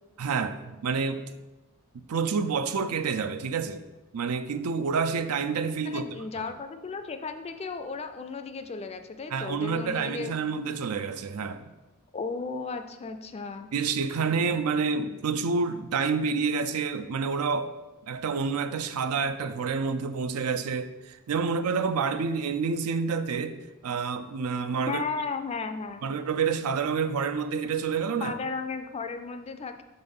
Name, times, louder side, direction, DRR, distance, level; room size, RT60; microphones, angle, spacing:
voice 1, 0.2-1.2 1.9-3.8 4.1-6.1 6.4-6.5 9.3-11.7 13.7-17.7 18.1-23.6 23.8-25.0 26.0-28.4, right 5 dB, 85° right, 0.4 m, -28 dB
voice 2, 5.9-10.3 12.1-13.7 24.9-26.1 28.2-29.8, left 4 dB, 30° left, 0.4 m, -35 dB
5.5 x 4.0 x 5.3 m
head